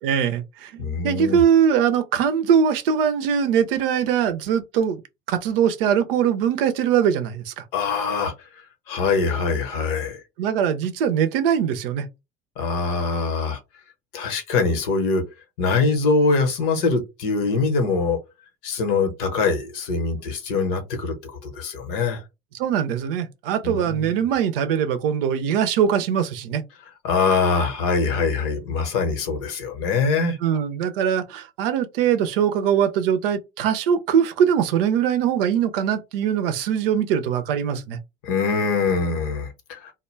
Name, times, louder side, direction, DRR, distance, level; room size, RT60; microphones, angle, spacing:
voice 1, 0.0-5.0 5.3-7.6 10.4-12.1 22.5-26.6 30.4-38.0, right 8 dB, 70° right, 0.5 m, -22 dB
voice 2, 0.8-1.4 7.7-8.3 8.9-10.2 12.6-13.6 14.1-15.2 15.6-18.2 18.6-21.1 21.4-22.2 23.6-24.2 27.0-30.4 38.2-39.9, left 4 dB, 65° left, 0.9 m, -23 dB
2.2 x 2.0 x 3.1 m
figure-of-eight pair, 65°, 29 cm